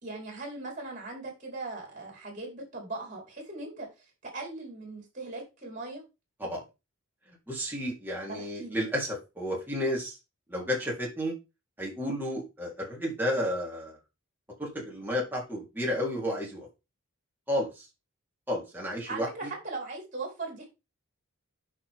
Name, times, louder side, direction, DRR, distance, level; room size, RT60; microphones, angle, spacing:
voice 1, 0.0-3.9 4.2-6.0 8.3-8.8 19.1-20.6, right 3 dB, 35° right, 0 dB, 4.6 m, -39 dB
voice 2, 7.5-10.2 10.5-11.3 11.8-14.0 14.6-16.7 17.5-17.9 18.5-19.5, equal, 10° right, -3 dB, 4.0 m, -32 dB
10.0 x 6.2 x 3.8 m, 0.27 s
head